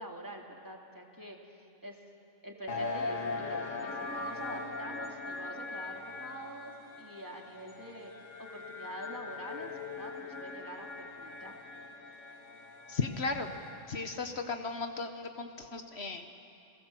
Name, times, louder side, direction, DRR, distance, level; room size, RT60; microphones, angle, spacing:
voice 1, 0.0-2.0 2.4-11.5, equal, 15° right, 0 dB, 2.4 m, -46 dB
sound 1, 2.7-14.1, left 3 dB, 80° left, 2.3 m, -40 dB
voice 2, 12.9-13.5 13.9-16.3, left 4 dB, 60° left, 6 dB, 1.3 m, -35 dB
30.0 x 18.0 x 7.6 m, 3.0 s
omnidirectional pair, 1.3 m